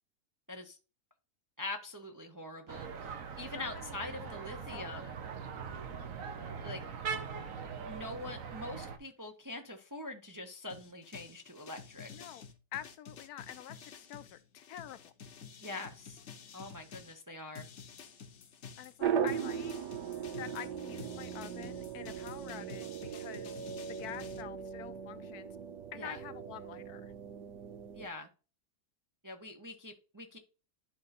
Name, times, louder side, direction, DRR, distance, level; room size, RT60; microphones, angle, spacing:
voice 1, 0.5-0.8 1.6-5.1 6.6-6.8 7.9-12.1 15.6-16.2 16.5-17.6 25.9-26.2 27.9-28.3 29.2-30.4, left 2 dB, 25° right, 0.4 m, -44 dB
sound 1, 2.7-9.0, right 6 dB, 60° right, 1.2 m, -41 dB
voice 2, 3.6-3.9 4.2-4.3 4.7-5.1 5.9-6.1 12.1-12.4 12.7-15.1 18.8-19.7 20.4-23.5 23.9-25.5 25.9-27.1, left 11 dB, 75° left, 1.1 m, -47 dB
sound 2, 10.7-17.2 17.5-24.4, left 6 dB, 50° left, 1.0 m, -51 dB
sound 3, 19.0-28.1, right 8 dB, 85° right, 1.4 m, -38 dB
11.5 x 3.9 x 4.1 m
omnidirectional pair, 1.7 m